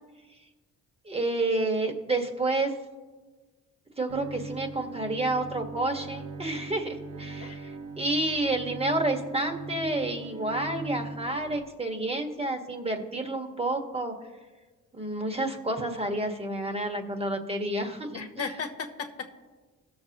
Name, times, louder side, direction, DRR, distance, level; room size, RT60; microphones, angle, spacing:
voice 1, 1.0-2.7 4.0-14.1 14.9-18.5, right 2 dB, 20° right, 4 dB, 1.6 m, -30 dB
Bowed string instrument, 4.1-11.6, right 3 dB, 80° right, 1.0 m, -40 dB
voice 2, 18.1-19.3, left 5 dB, 50° left, 3 dB, 1.2 m, -35 dB
17.5 x 6.9 x 2.9 m, 1.3 s
cardioid pair, 90°, 30 cm